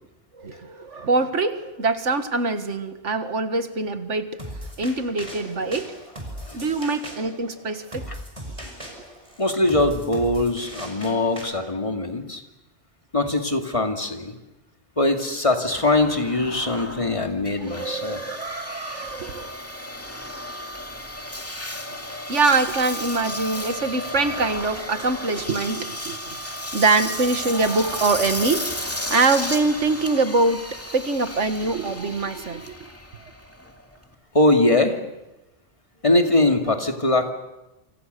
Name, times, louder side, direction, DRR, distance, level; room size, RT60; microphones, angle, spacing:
voice 1, 0.4-4.4 4.8-5.9 6.5-8.0 17.6-19.5 22.3-30.7 30.9-32.8, right 3 dB, 85° right, 9 dB, 2.1 m, -24 dB
sound 1, 4.4-11.4, equal, 25° right, 5.7 m, -38 dB
voice 2, 9.4-12.4 13.1-14.3 15.0-18.2 34.3-35.0 36.0-37.3, left 2 dB, 25° left, 5 dB, 2.5 m, -21 dB
Engine, 15.7-34.1, left 1 dB, 10° left, 2.3 m, -34 dB
28.0 x 26.5 x 6.8 m, 0.99 s
omnidirectional pair, 1.2 m